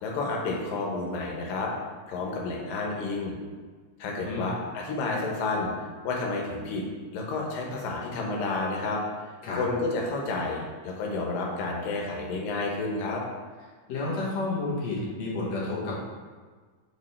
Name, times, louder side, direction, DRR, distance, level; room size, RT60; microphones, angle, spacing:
voice 1, 0.0-1.7 2.1-3.4 4.0-5.7 6.0-6.8 7.1-9.0 9.6-13.2, left 3 dB, 90° left, -1 dB, 2.8 m, -30 dB
voice 2, 13.9-16.0, left 2 dB, 55° left, -6 dB, 2.4 m, -30 dB
5.4 x 4.8 x 4.3 m, 1.5 s
omnidirectional pair, 3.8 m